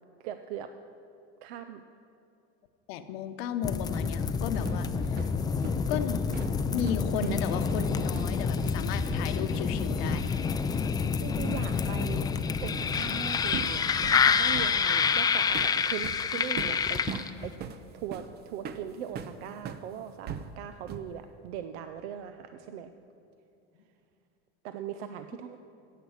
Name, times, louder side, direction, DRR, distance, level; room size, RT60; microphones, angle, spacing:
voice 1, 0.2-0.7 1.4-1.8 10.9-12.3 12.6-13.8 14.1-17.5 17.9-22.9 24.6-25.6, right 9 dB, 80° right, 9 dB, 0.6 m, -40 dB
voice 2, 2.9-4.9 5.9-6.2 6.7-10.3, left 8 dB, 75° left, 8 dB, 0.9 m, -34 dB
sound 1, 3.6-17.5, left 6 dB, 15° left, 0.3 m, -28 dB
sound 2, 4.5-10.5 10.8-11.0 12.9-13.2 13.5-19.9 20.3-21.2, right 7 dB, 30° right, 0.6 m, -41 dB
10.0 x 8.4 x 7.2 m, 2.6 s
supercardioid pair, 125°, 31 cm